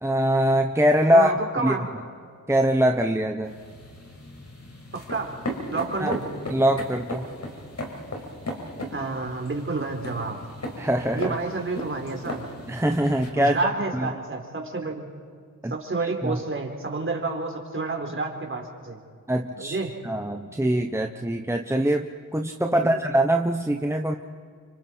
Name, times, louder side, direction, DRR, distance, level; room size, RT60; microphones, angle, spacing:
voice 1, 0.0-1.3 1.6-1.7 2.5-3.6 6.0-6.1 6.5-7.3 10.8-11.3 12.7-13.6 13.9-14.1 15.6-15.7 16.2-16.4 19.3-19.8 20.0-24.2, right 1 dB, 10° right, 4 dB, 1.1 m, -23 dB
voice 2, 1.1-1.9 4.9-5.4 5.7-6.2 8.9-10.4 11.1-12.5 13.4-15.1 15.7-19.0 19.6-19.9 22.7-23.0, right 3 dB, 40° right, 2 dB, 4.0 m, -29 dB
sound 1, 3.4-13.3, left 1 dB, 55° left, 5.3 m, -36 dB
30.0 x 25.5 x 4.6 m, 2.1 s
cardioid pair, 80°, 33 cm